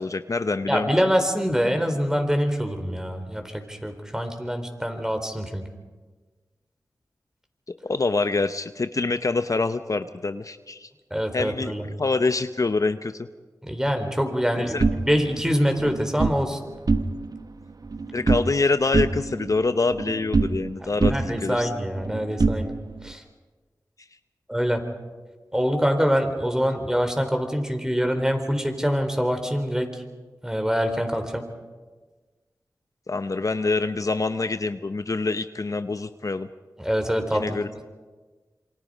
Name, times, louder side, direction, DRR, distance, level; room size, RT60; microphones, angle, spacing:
voice 1, 0.0-0.9 7.7-10.9 11.3-11.7 12.0-13.3 14.6-14.8 18.1-21.7 33.1-36.5 37.3-37.7, left 3 dB, 50° left, 10 dB, 0.7 m, -25 dB
voice 2, 0.7-5.6 11.1-11.8 13.6-16.6 20.9-22.7 23.0-23.2 24.5-24.8 25.5-30.0 30.4-31.4 36.8-37.6, equal, 10° right, 5 dB, 4.1 m, -25 dB
sound 1, 14.8-16.4 16.8-17.4 17.7-18.6 18.9-20.7 21.0-23.1, right 3 dB, 60° right, 1.0 m, -25 dB
27.5 x 24.0 x 5.1 m, 1.3 s
cardioid pair, 45°, 7 cm